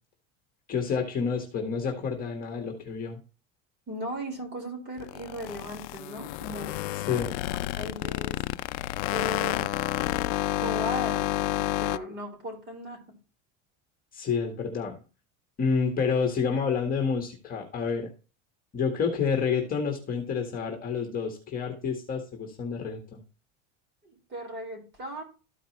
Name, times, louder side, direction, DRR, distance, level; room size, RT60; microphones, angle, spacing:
voice 1, 0.7-3.2 6.9-7.3 14.1-15.0 15.6-18.1 18.7-23.2, left 5 dB, 25° left, 3 dB, 1.6 m, -29 dB
voice 2, 3.9-6.8 7.8-8.4 9.1-9.7 10.5-13.0 24.0-25.2, equal, 30° right, 1 dB, 4.2 m, -37 dB
sound 1, 5.0-12.0, left 17 dB, 75° left, 0.5 m, -30 dB
13.5 x 5.0 x 3.1 m, 0.34 s
cardioid pair, 160°, 35 cm